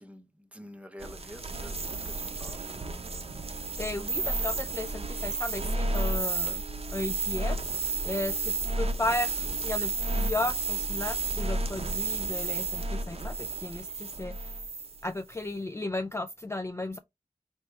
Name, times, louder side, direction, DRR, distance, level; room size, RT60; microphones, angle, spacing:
voice 1, 0.0-2.7, equal, 10° right, 0.7 m, -48 dB
sound 1, 1.0-15.0, right 3 dB, 45° right, 0.7 m, -32 dB
voice 2, 3.8-6.6 6.9-14.6 15.0-17.0, left 2 dB, 20° left, 0.3 m, -34 dB
4.4 x 2.8 x 3.1 m
wide cardioid pair, 80°, 13 cm